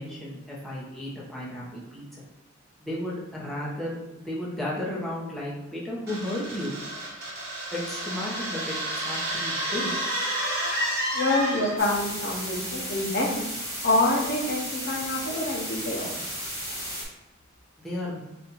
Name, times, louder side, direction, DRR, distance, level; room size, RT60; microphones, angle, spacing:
voice 1, 0.0-2.2 2.8-6.9 7.7-8.8 9.0-9.9 17.8-18.2, left 1 dB, ahead, -6 dB, 0.9 m, -34 dB
sound 1, 6.1-12.0, right 1 dB, 55° right, 1.3 m, -30 dB
voice 2, 11.1-13.4 13.8-16.1, left 2 dB, 55° left, -1 dB, 0.8 m, -26 dB
sound 2, 11.8-17.0, equal, 15° right, 1.2 m, -34 dB
4.2 x 2.5 x 4.0 m, 1.0 s
head